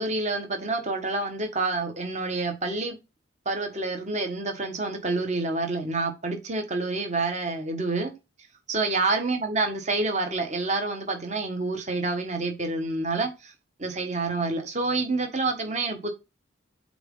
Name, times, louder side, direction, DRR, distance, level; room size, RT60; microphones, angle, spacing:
voice 1, 0.0-2.9 3.4-8.1 8.7-13.5 13.8-16.1, right 3 dB, 35° right, 1.4 m, -28 dB
7.9 x 3.7 x 3.8 m
head